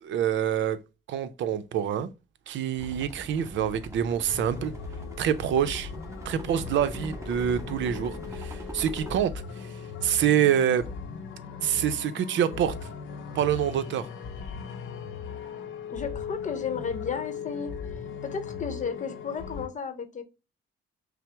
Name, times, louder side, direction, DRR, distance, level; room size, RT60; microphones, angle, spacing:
voice 1, 0.0-0.8 1.1-2.1 2.5-4.7 5.2-5.9 6.2-9.7 10.0-10.9 11.6-12.7 13.3-14.1, right 9 dB, 70° right, 0.6 m, -26 dB
sound 1, 2.7-9.3, right 1 dB, 15° right, 1.3 m, -42 dB
sound 2, 4.3-19.7, left 6 dB, 75° left, 0.6 m, -38 dB
voice 2, 15.9-17.7 18.2-20.2, left 6 dB, 40° left, 0.8 m, -33 dB
5.7 x 2.0 x 3.3 m
cardioid pair, 90°, 20 cm